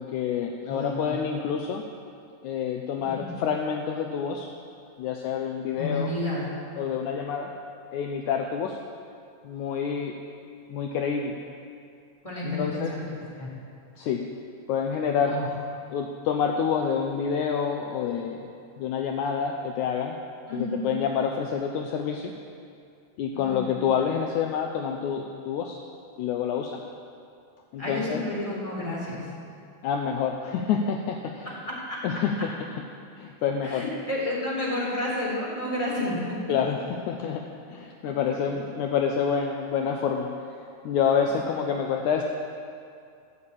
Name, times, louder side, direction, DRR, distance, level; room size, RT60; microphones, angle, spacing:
voice 1, 0.0-1.9 2.4-4.5 5.0-6.1 6.8-7.5 7.9-8.8 9.4-10.2 10.7-11.4 12.4-13.0 14.0-14.3 14.7-15.4 15.9-18.5 18.8-20.2 20.5-22.3 23.2-25.8 26.2-26.8 27.7-28.2 29.8-31.5 32.0-32.5 33.2-33.9 36.5-40.6 40.8-42.2, left 7 dB, 80° left, 2 dB, 1.8 m, -28 dB
voice 2, 0.7-1.1 3.0-3.3 5.8-6.4 12.2-13.0 13.4-13.5 15.3-15.5 20.5-20.9 23.3-23.7 27.8-29.3 31.9-32.0 33.6-36.2 38.0-38.5 41.4-41.6, left 1 dB, 10° left, -5 dB, 3.5 m, -31 dB
15.5 x 7.0 x 8.6 m, 2.4 s
omnidirectional pair, 4.1 m